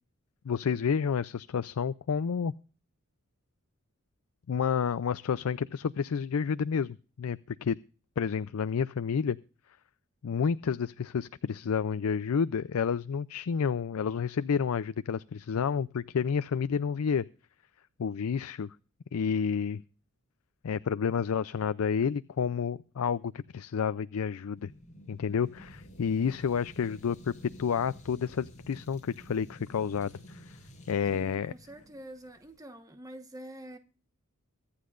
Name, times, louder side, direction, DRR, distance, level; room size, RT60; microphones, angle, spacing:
voice 1, 0.4-2.5 4.5-7.8 8.2-9.4 10.2-17.2 18.0-18.7 19.1-19.8 20.6-24.7 25.1-27.3 27.6-30.6 30.9-31.5, left 6 dB, 75° left, 0.4 m, -30 dB
sound 1, 24.6-32.6, equal, 35° left, 7.3 m, -51 dB
voice 2, 31.0-33.8, right 1 dB, 15° right, 1.2 m, -46 dB
24.0 x 8.5 x 2.5 m
head